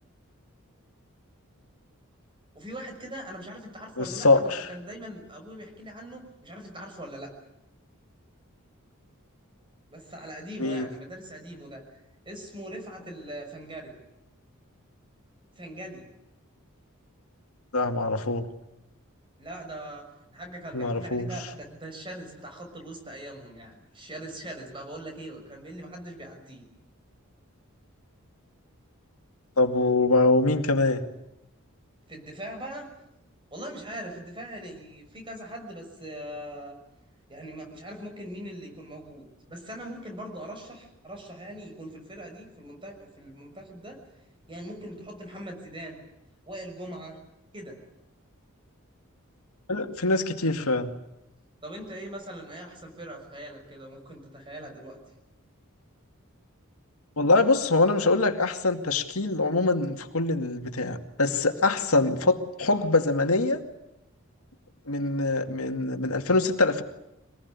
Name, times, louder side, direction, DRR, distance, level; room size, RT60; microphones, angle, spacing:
voice 1, 2.5-7.3 9.9-11.8 12.3-13.9 15.5-16.1 19.4-26.6 32.1-32.9 33.5-36.8 37.3-44.0 44.5-46.0 46.5-47.2 47.5-47.8 51.6-55.0, right 1 dB, 25° right, 4 dB, 6.1 m, -41 dB
voice 2, 4.0-4.7 10.6-10.9 17.7-18.4 20.7-21.3 29.6-31.0 49.7-50.9 57.2-63.6 64.9-66.8, left 3 dB, 85° left, 6 dB, 2.3 m, -24 dB
25.0 x 20.0 x 9.7 m, 0.87 s
head